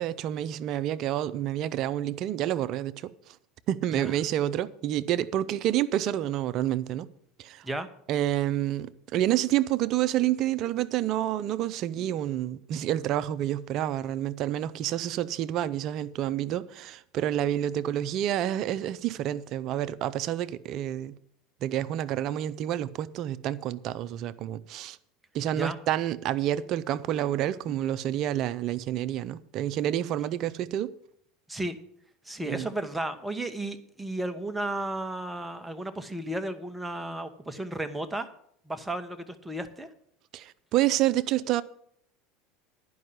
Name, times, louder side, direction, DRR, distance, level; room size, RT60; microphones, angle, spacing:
voice 1, 0.0-3.1 3.7-7.1 7.4-7.6 8.1-21.1 21.6-25.0 25.3-30.9 32.5-32.7 40.3-41.6, right 12 dB, 50° right, 0.6 m, -28 dB
voice 2, 32.2-38.3 38.7-39.9, right 1 dB, 10° right, 1.2 m, -33 dB
11.0 x 5.5 x 8.0 m
hypercardioid pair, 85°, 0 cm